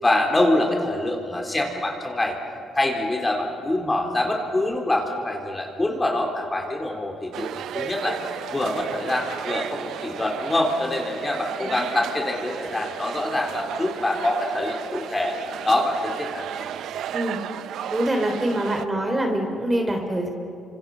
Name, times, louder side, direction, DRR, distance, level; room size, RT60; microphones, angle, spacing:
voice 1, 0.0-2.4 2.7-8.2 8.5-15.4 15.6-16.5, left 1 dB, 20° left, 1 dB, 3.8 m, -25 dB
sound 1, 7.3-18.9, right 10 dB, 80° right, 0.7 m, -34 dB
voice 2, 11.6-11.9 17.1-17.4 17.9-20.3, right 1 dB, 20° right, 3 dB, 3.6 m, -25 dB
29.5 x 26.0 x 5.5 m, 2.5 s
cardioid pair, 90°, 0 cm